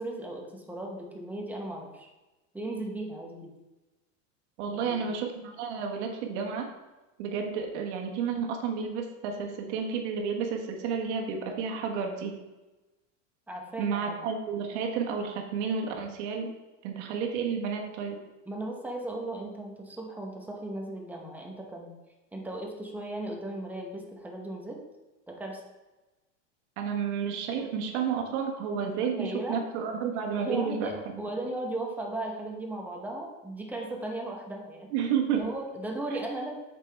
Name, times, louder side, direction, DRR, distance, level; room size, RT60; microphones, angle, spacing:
voice 1, 0.0-2.1 2.5-3.5 4.7-5.1 13.5-14.2 18.5-21.9 22.3-24.8 25.3-25.6 27.6-27.7 28.8-29.6 30.4-34.9 35.3-36.5, right 2 dB, 5° right, 0 dB, 0.9 m, -36 dB
voice 2, 4.6-6.7 7.2-12.4 13.8-16.5 16.8-18.2 26.8-31.2 34.9-35.5, right 6 dB, 60° right, 2 dB, 1.4 m, -31 dB
7.8 x 6.0 x 3.4 m, 1.1 s
supercardioid pair, 150°, 38 cm